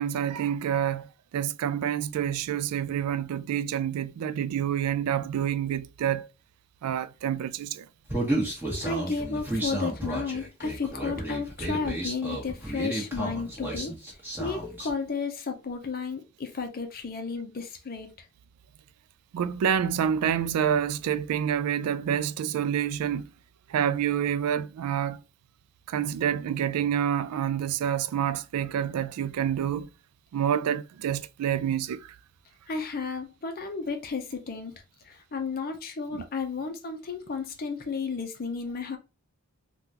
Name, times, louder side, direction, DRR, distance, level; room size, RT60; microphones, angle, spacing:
voice 1, 0.0-6.3 6.8-7.9 19.3-23.3 23.7-25.2 25.9-29.9 30.3-32.2 36.1-36.2, right 9 dB, 85° right, 0.3 m, -28 dB
Human voice, 8.1-14.9, right 1 dB, 10° right, 1.1 m, -32 dB
voice 2, 8.8-14.0 14.4-18.1 32.7-34.7 35.0-39.0, left 4 dB, 40° left, 0.5 m, -33 dB
3.7 x 2.3 x 2.7 m
head